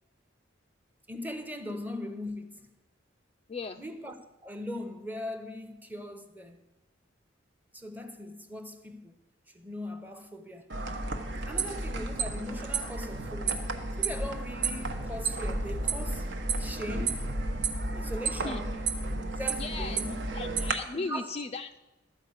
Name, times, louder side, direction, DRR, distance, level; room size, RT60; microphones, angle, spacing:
voice 1, 1.1-2.7 3.8-4.1 4.4-6.6 7.7-9.2 9.5-10.7 11.5-16.3 16.6-17.3 17.9-18.7 19.4-20.2 20.9-21.4, left 1 dB, 10° right, 0.8 m, -40 dB
voice 2, 3.5-3.8 18.4-18.6 19.6-20.1 20.3-21.8, left 4 dB, 30° left, 0.4 m, -36 dB
sound 1, 10.7-20.7, right 3 dB, 65° right, 1.0 m, -32 dB
12.5 x 5.0 x 8.0 m
head